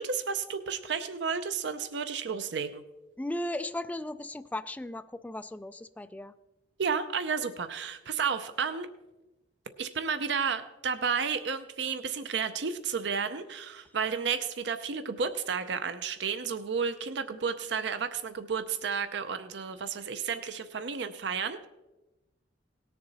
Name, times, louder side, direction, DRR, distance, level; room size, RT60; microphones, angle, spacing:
voice 1, 0.0-2.8 6.8-8.9 9.8-21.7, right 6 dB, 65° right, 10 dB, 0.6 m, -32 dB
voice 2, 3.2-6.3, left 1 dB, 10° left, 10 dB, 0.3 m, -36 dB
18.5 x 6.8 x 4.1 m, 1.1 s
head